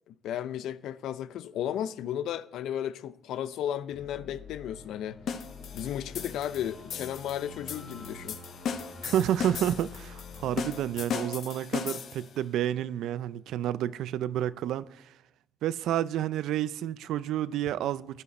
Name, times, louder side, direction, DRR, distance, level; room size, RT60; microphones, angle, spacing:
voice 1, 0.1-5.2 5.7-8.4, left 10 dB, 80° left, 0.5 m, -34 dB
sound 1, 3.9-11.0, left 4 dB, 40° left, 2.2 m, -47 dB
sound 2, 5.3-12.4, left 6 dB, 60° left, 1.0 m, -37 dB
voice 2, 9.0-15.0 15.6-18.2, right 11 dB, 80° right, 0.4 m, -30 dB
15.0 x 10.5 x 4.2 m
cardioid pair, 130°, 0 cm